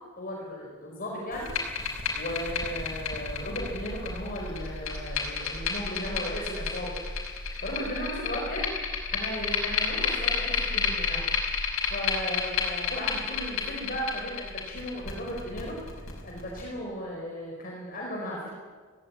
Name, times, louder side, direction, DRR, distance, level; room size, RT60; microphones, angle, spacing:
voice 1, 0.2-1.8 2.1-7.0 7.6-8.6 9.1-11.3 11.9-15.8 16.2-18.5, equal, 40° left, -2 dB, 4.7 m, -36 dB
sound 1, 1.3-16.6, left 5 dB, 70° left, 5.8 m, -31 dB
18.0 x 17.5 x 9.8 m, 1.5 s
head